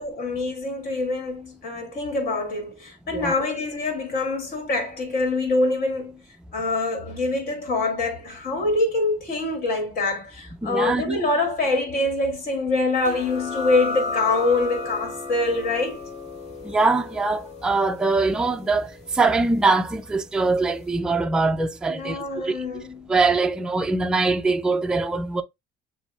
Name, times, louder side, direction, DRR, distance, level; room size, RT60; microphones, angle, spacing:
voice 1, 0.0-6.2 6.5-16.0 21.9-23.1, left 2 dB, 60° left, 2.4 m, -25 dB
voice 2, 10.6-11.2 16.6-22.6 23.1-25.4, right 3 dB, 5° right, 0.4 m, -23 dB
sound 1, 13.0-20.3, left 3 dB, 40° left, 1.7 m, -34 dB
7.2 x 2.7 x 2.3 m
cardioid pair, 110°, 17 cm